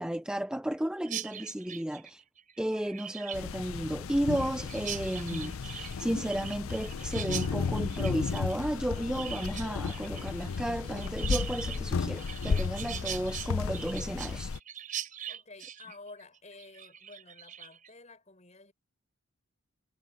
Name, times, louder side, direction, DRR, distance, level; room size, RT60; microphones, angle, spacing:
voice 1, 0.0-2.2 2.6-14.5, right 1 dB, 5° right, 0.3 m, -33 dB
Chirp tweet, 1.0-17.9, right 9 dB, 40° right, 4.0 m, -42 dB
sound 1, 3.3-14.6, left 5 dB, 80° left, 0.5 m, -34 dB
voice 2, 15.3-18.7, left 3 dB, 35° left, 6.3 m, -51 dB
head